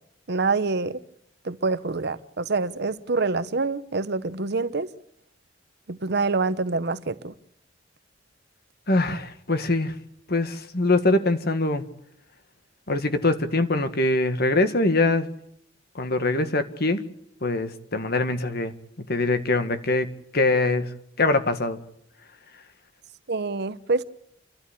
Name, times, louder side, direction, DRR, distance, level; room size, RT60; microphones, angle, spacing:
voice 1, 0.3-1.0 1.4-4.9 5.9-7.3 23.3-24.0, right 3 dB, 60° right, 0.9 m, -26 dB
voice 2, 8.9-9.9 10.3-11.8 12.9-15.3 16.0-17.0 17.4-18.7 19.1-20.9 21.2-21.8, left 2 dB, 55° left, 1.8 m, -23 dB
29.0 x 12.5 x 8.3 m
head